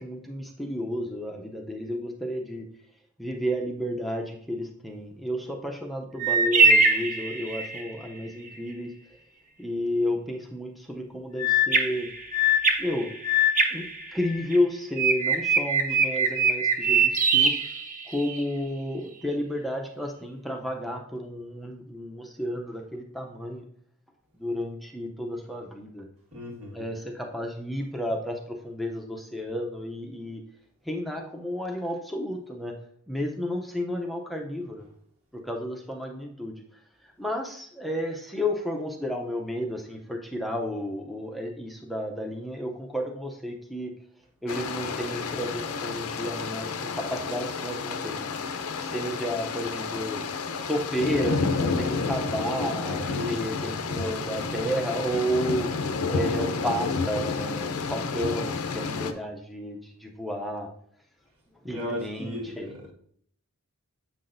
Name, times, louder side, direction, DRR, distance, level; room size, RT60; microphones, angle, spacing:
voice 1, 0.0-2.7 3.2-9.2 9.6-12.1 12.8-13.2 13.7-17.5 18.1-23.6 24.4-26.1 26.7-30.4 30.8-32.8 33.1-34.8 35.3-36.6 37.0-43.9 44.4-48.3 48.8-50.2 50.7-55.7 56.1-60.7 61.6-62.8, equal, ahead, 1 dB, 0.5 m, -32 dB
sound 1, 6.2-7.9 11.4-14.6 15.0-18.4, right 2 dB, 35° right, 0.7 m, -23 dB
voice 2, 26.3-26.9 53.1-53.4 61.6-62.9, left 1 dB, 65° right, -2 dB, 1.6 m, -35 dB
sound 2, 44.5-59.1, left 4 dB, 80° left, 0.6 m, -30 dB
7.7 x 5.8 x 2.6 m, 0.64 s
head